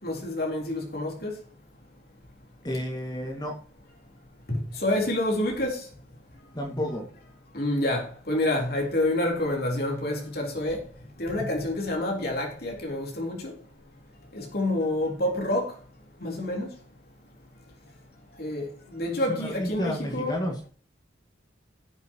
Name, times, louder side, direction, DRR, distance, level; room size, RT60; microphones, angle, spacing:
voice 1, 0.0-1.3 4.5-5.9 7.5-10.8 11.2-13.5 14.3-15.7 16.2-16.7 18.4-20.4, left 1 dB, 50° left, 3.8 m, -28 dB
voice 2, 2.6-3.5 6.5-7.1 19.3-20.6, equal, 20° left, 2.1 m, -31 dB
16.5 x 8.2 x 3.0 m
head